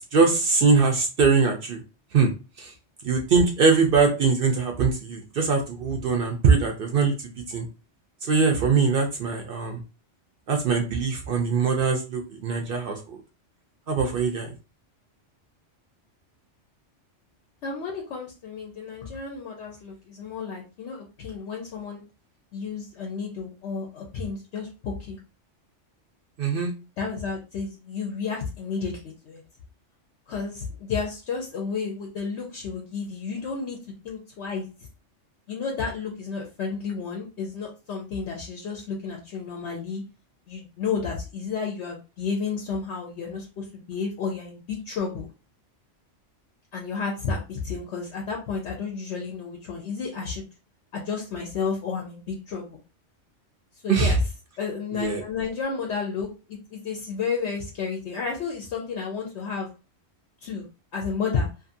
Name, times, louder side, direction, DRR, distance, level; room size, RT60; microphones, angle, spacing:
voice 1, 0.1-1.8 2.1-2.3 2.6-2.7 3.0-7.1 7.5-7.7 8.2-9.8 10.5-13.2 13.9-14.5 26.4-26.7 53.9-54.2 54.9-55.2, right 4 dB, 60° right, 3 dB, 0.6 m, -22 dB
voice 2, 17.6-22.0 22.5-25.2 27.0-29.4 30.3-33.8 34.0-34.6 35.5-40.0 40.5-45.3 46.7-50.5 50.9-52.8 53.8-54.2 54.6-59.7 60.4-60.6 60.9-61.5, left 5 dB, 70° left, 0 dB, 0.9 m, -31 dB
2.6 x 2.5 x 2.5 m, 0.31 s
omnidirectional pair, 1.3 m